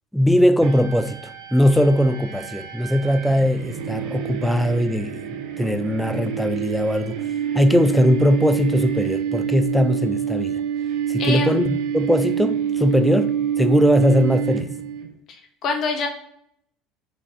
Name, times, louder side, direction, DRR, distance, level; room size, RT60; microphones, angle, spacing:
voice 1, 0.1-7.2 7.5-10.6 11.1-14.7, equal, ahead, 0.3 m, -20 dB
sound 1, 0.6-15.1, right 9 dB, 70° right, 0.5 m, -27 dB
voice 2, 11.2-11.5 15.3-16.1, left 4 dB, 50° left, 0.8 m, -25 dB
2.9 x 2.5 x 3.7 m
supercardioid pair, 95°, 0 cm